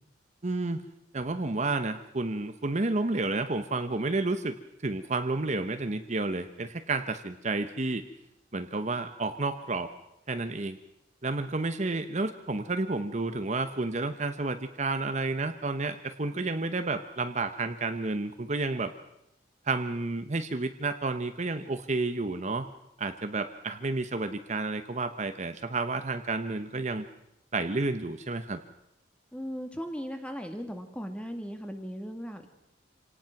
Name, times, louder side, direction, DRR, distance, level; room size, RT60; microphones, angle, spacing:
voice 1, 0.4-0.8 1.1-4.6 4.8-8.0 8.5-9.9 10.3-10.8 11.2-18.9 19.7-22.7 23.0-27.1 27.5-28.6, right 3 dB, 40° right, 8 dB, 0.9 m, -31 dB
voice 2, 29.3-32.5, equal, 5° left, 5 dB, 2.2 m, -37 dB
26.5 x 18.5 x 5.9 m, 0.85 s
head